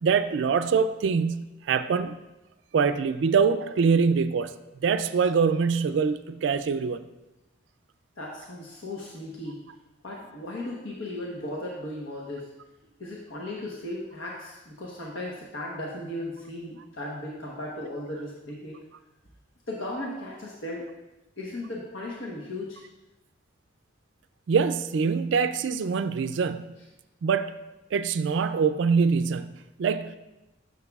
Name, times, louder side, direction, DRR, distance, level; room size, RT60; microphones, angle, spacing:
voice 1, 0.0-2.2 2.7-4.5 4.8-7.0 24.5-26.7 27.2-27.6 27.9-29.5 29.8-30.1, right 5 dB, 65° right, 0.3 m, -24 dB
voice 2, 8.2-9.6 10.0-12.5 13.0-18.8 19.7-20.9 21.4-22.8, left 1 dB, 80° left, 1.1 m, -36 dB
10.5 x 6.5 x 2.4 m
head